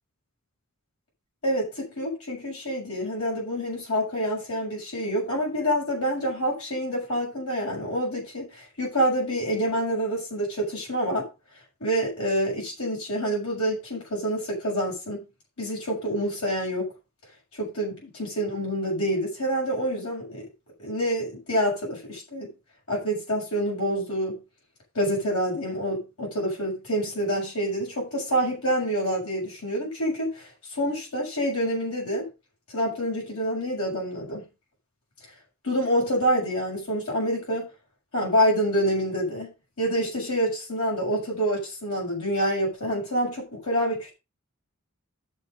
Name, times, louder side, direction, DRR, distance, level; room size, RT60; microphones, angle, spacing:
voice 1, 1.4-11.3 11.8-15.2 15.6-16.9 17.5-20.5 20.8-22.5 22.9-24.4 24.9-32.3 32.7-34.4 35.6-37.7 38.1-44.1, equal, 80° left, 7.3 m, -27 dB
9.8 x 8.3 x 5.3 m
head